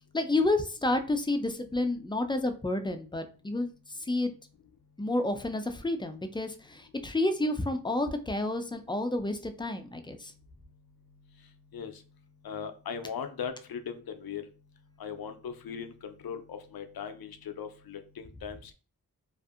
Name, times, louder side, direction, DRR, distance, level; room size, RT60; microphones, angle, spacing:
voice 1, 0.1-3.7 4.0-4.3 5.0-10.3, left 2 dB, 15° left, 7 dB, 0.3 m, -30 dB
voice 2, 12.4-14.4 15.0-18.7, left 7 dB, 70° left, 9 dB, 0.5 m, -39 dB
2.6 x 2.4 x 2.4 m, 0.36 s
cardioid pair, 50°, 38 cm